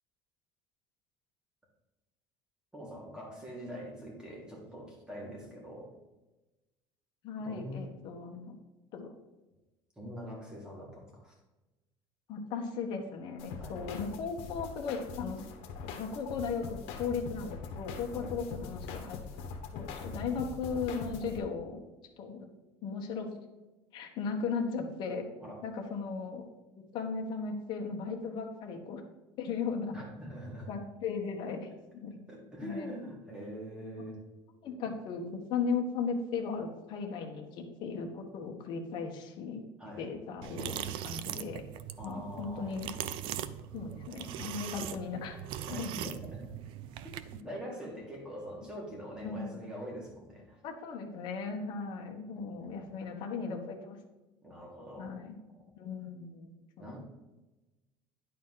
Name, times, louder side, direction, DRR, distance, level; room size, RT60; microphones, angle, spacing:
voice 1, 2.7-5.9 7.4-7.9 10.0-11.3 13.6-13.8 18.1-18.3 25.4-25.6 29.9-30.7 32.3-34.2 39.8-40.1 42.0-42.8 45.7-46.5 47.0-47.1 47.4-50.6 52.3-52.8 54.4-55.2 55.5-55.6 56.8-57.0, equal, 10° right, -3 dB, 2.1 m, -44 dB
voice 2, 7.2-8.6 8.9-9.1 12.3-15.5 15.8-19.2 19.7-21.8 22.2-22.5 22.8-23.3 23.9-25.3 25.6-26.5 26.9-29.0 29.4-29.9 30.7-32.2 32.6-32.9 34.6-39.6 40.0-41.6 42.0-42.9 43.7-45.4 45.7-45.9 49.2-49.7 50.6-54.0 55.0-55.4 55.8-56.9, left 5 dB, 45° left, 2 dB, 1.3 m, -37 dB
sound 1, 13.4-21.4, left 5 dB, 70° left, 1.3 m, -42 dB
sound 2, 40.4-47.4, right 11 dB, 55° right, 0.4 m, -40 dB
10.5 x 4.2 x 5.7 m, 1.1 s
cardioid pair, 165°, 11 cm